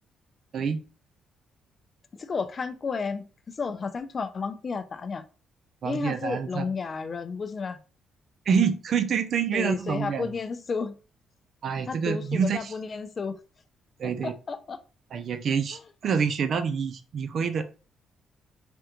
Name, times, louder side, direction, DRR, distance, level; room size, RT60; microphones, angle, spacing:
voice 1, 2.1-3.3 3.6-5.2 5.8-7.8 9.5-10.9 11.9-13.4 14.2-14.8, left 5 dB, 40° left, 0.4 m, -32 dB
voice 2, 5.8-6.7 8.5-10.3 11.6-12.7 14.0-14.3 15.1-17.7, right 6 dB, 60° right, 0.4 m, -27 dB
3.4 x 2.4 x 2.9 m
cardioid pair, 90°, 0 cm